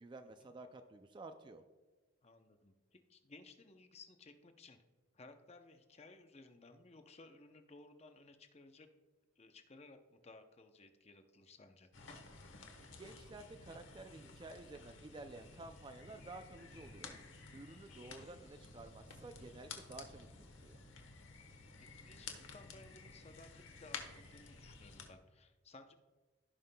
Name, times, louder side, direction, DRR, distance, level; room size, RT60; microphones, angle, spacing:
voice 1, 0.0-1.6 13.0-17.1 17.5-20.8, right 2 dB, 20° right, 8 dB, 0.3 m, -52 dB
voice 2, 2.2-4.8 5.1-8.9 9.4-11.9 17.7-17.8 18.1-18.3 22.0-25.9, left 3 dB, 30° left, 7 dB, 0.6 m, -59 dB
sound 1, 11.9-25.1, left 4 dB, 70° left, 1.1 m, -53 dB
16.5 x 5.6 x 2.2 m, 1.2 s
head